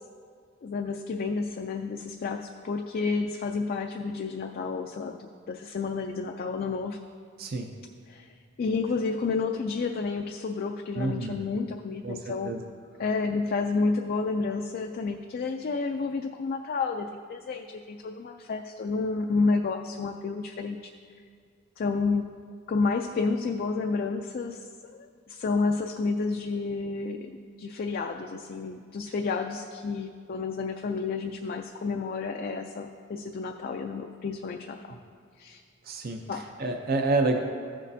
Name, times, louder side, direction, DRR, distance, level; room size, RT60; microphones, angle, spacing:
voice 1, 0.6-5.2 5.5-7.0 8.1-8.3 8.6-12.6 13.0-20.9 21.8-22.3 22.7-35.0 35.4-35.6 36.3-36.5, left 4 dB, 45° left, 3 dB, 0.3 m, -30 dB
voice 2, 7.4-7.7 11.0-11.5 12.0-12.6 34.9-35.0 35.8-37.4, right 3 dB, 45° right, 4 dB, 0.5 m, -29 dB
15.0 x 6.3 x 2.7 m, 2.1 s
head